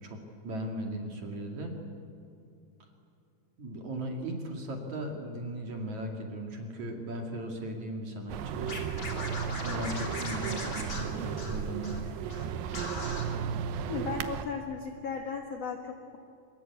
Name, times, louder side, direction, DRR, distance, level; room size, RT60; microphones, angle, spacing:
voice 1, 0.0-1.7 3.6-8.9 9.6-12.0, right 1 dB, 45° right, 2 dB, 3.3 m, -37 dB
sound 1, 8.3-14.4, right 8 dB, 75° right, 2.2 m, -35 dB
Scratching (performance technique), 8.7-12.0 12.3-12.4 12.7-13.2, left 2 dB, 25° left, 2.8 m, -39 dB
voice 2, 13.9-16.2, left 5 dB, 60° left, 4 dB, 1.7 m, -36 dB
24.5 x 22.0 x 8.4 m, 2.6 s
omnidirectional pair, 5.1 m